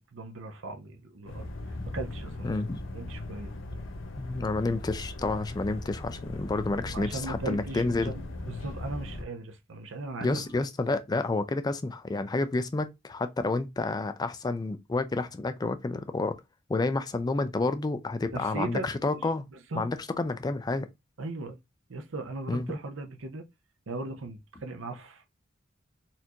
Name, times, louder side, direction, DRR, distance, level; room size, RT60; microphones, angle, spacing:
voice 1, 0.0-2.5 2.9-3.5 6.8-10.6 18.3-19.2 19.5-19.9 21.2-21.6 21.9-23.4 23.9-25.3, right 2 dB, 80° right, 0.7 m, -38 dB
sound 1, 1.3-9.2, left 1 dB, 75° left, 0.7 m, -39 dB
voice 2, 2.4-2.8 4.2-8.1 10.2-16.4 16.7-19.4 19.7-20.9 22.5-22.7, left 3 dB, 20° left, 0.3 m, -29 dB
4.2 x 2.6 x 2.8 m
head